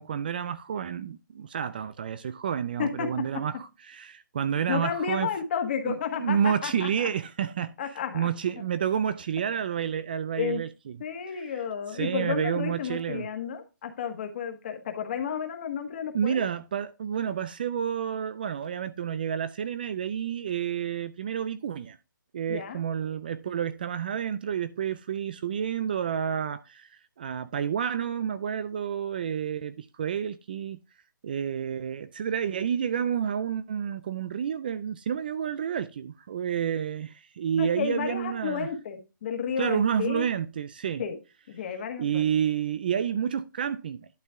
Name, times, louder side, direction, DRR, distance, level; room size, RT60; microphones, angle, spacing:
voice 1, 0.0-5.3 5.8-7.7 8.1-11.0 11.3-11.4 11.9-13.3 16.1-22.0 22.3-30.8 31.2-38.7 39.6-41.0 42.0-44.1, right 8 dB, 30° right, 0.3 m, -30 dB
voice 2, 2.8-3.4 4.7-7.1 7.8-8.3 10.4-10.6 11.0-16.4 22.5-22.8 37.6-40.3 41.0-41.2 41.5-42.2, left 7 dB, 35° left, 1.5 m, -32 dB
11.5 x 4.5 x 3.6 m
hypercardioid pair, 170°, 10 cm